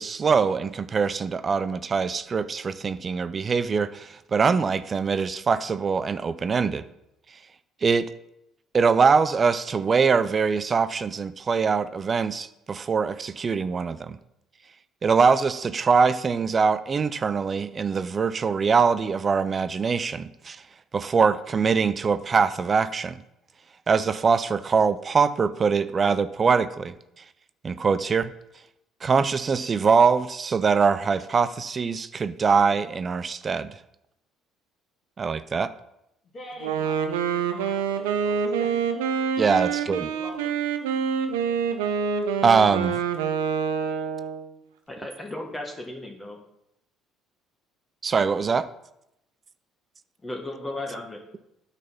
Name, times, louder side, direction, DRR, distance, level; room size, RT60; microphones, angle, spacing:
voice 1, 0.0-6.8 7.8-8.1 8.7-14.2 15.0-20.6 20.9-23.1 23.9-26.9 27.6-28.3 29.0-33.7 35.2-35.7 39.4-40.1 42.4-43.0 48.0-48.7, right 5 dB, 35° right, 13 dB, 0.4 m, -23 dB
voice 2, 36.3-39.0 39.6-40.5, equal, 35° left, -4 dB, 2.2 m, -44 dB
Wind instrument woodwind instrument, 36.6-44.5, right 6 dB, 90° right, 0.6 m, -26 dB
voice 3, 44.9-46.4 50.2-51.2, left 1 dB, 20° left, 1 dB, 1.5 m, -35 dB
9.2 x 4.1 x 5.5 m, 0.83 s
hypercardioid pair, 65°, 0 cm